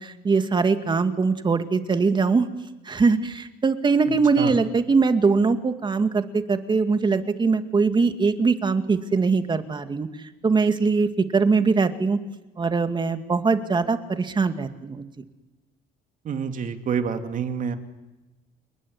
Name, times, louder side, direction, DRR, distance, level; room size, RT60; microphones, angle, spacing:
voice 1, 0.0-2.5 2.9-10.1 10.4-12.2 12.6-15.1, right 4 dB, 25° right, 8 dB, 2.3 m, -22 dB
voice 2, 16.3-17.8, right 7 dB, 50° right, 7 dB, 2.8 m, -27 dB
29.5 x 19.5 x 9.8 m, 1.1 s
cardioid pair, 110°, 17 cm